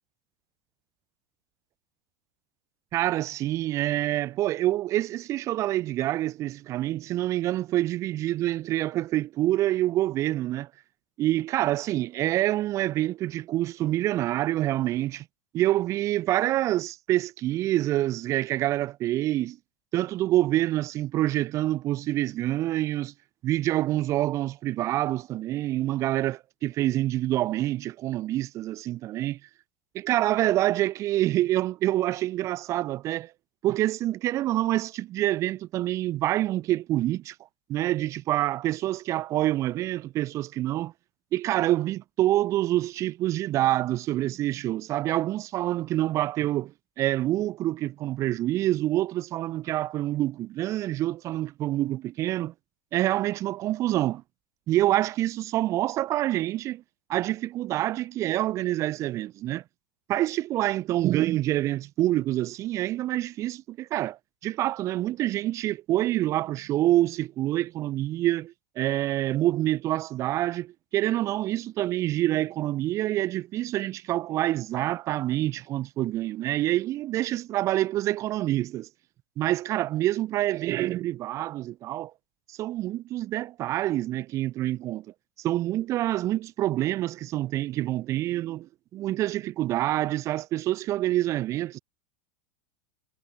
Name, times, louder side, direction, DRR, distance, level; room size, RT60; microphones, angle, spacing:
voice 1, 2.9-10.7 11.2-15.2 15.5-19.6 19.9-23.1 23.4-29.4 29.9-33.3 33.6-37.3 37.7-40.9 41.3-52.5 52.9-54.2 54.7-56.8 57.1-59.6 60.1-78.9 79.4-82.1 82.6-85.0 85.4-91.8, right 14 dB, 40° right, 1.5 m, -27 dB
figure-of-eight pair, 85°, 8 cm